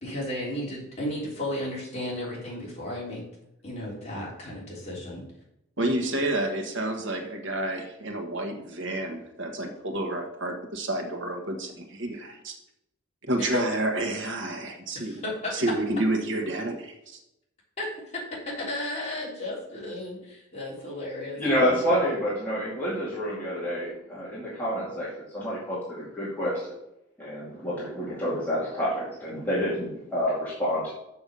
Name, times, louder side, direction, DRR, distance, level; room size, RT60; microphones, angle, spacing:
voice 1, 0.0-3.2 3.6-5.2 13.4-13.6 14.9-15.5 17.8-17.9 18.6-21.6, left 1 dB, 30° left, -4 dB, 3.3 m, -34 dB
voice 2, 5.8-12.5 13.2-15.2 15.5-16.9, right 1 dB, 60° right, 3 dB, 1.4 m, -29 dB
voice 3, 21.4-26.5 27.2-30.9, equal, 10° left, -9 dB, 2.4 m, -28 dB
7.1 x 5.8 x 6.8 m, 0.84 s
head